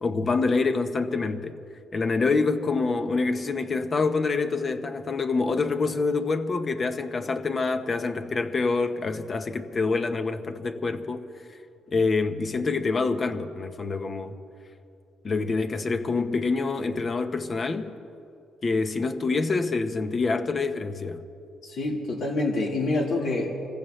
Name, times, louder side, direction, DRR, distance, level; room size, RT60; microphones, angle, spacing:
voice 1, 0.0-1.6 1.9-11.3 11.9-14.4 15.2-17.9 18.6-21.2, left 4 dB, 40° left, 1.0 m, -26 dB
voice 2, 21.6-23.6, left 2 dB, 70° left, 4.2 m, -27 dB
25.5 x 15.5 x 3.3 m
cardioid pair, 90°, 0 cm